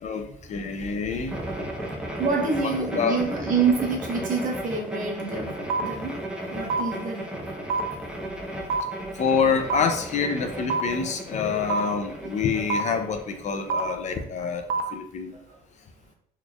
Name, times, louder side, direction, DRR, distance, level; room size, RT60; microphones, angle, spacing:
voice 1, 0.0-1.4 2.6-3.3 6.9-7.0 9.2-15.3, left 6 dB, 45° left, 6 dB, 0.4 m, -27 dB
sound 1, 1.3-14.0, right 1 dB, 5° right, 0.7 m, -35 dB
voice 2, 2.2-5.5 5.8-6.2 6.5-7.2 11.4-11.7 13.8-13.9 14.4-14.5, right 4 dB, 50° right, 0 dB, 1.0 m, -27 dB
sound 2, 5.7-5.8 6.7-6.8 7.7-7.8 8.7-8.8 9.7-9.8 10.7-10.8 11.7-11.8 12.7-12.8 13.7-13.8 14.7-14.8, right 5 dB, 65° right, 0.5 m, -24 dB
4.0 x 3.1 x 2.3 m, 0.67 s
cardioid pair, 110°, 17 cm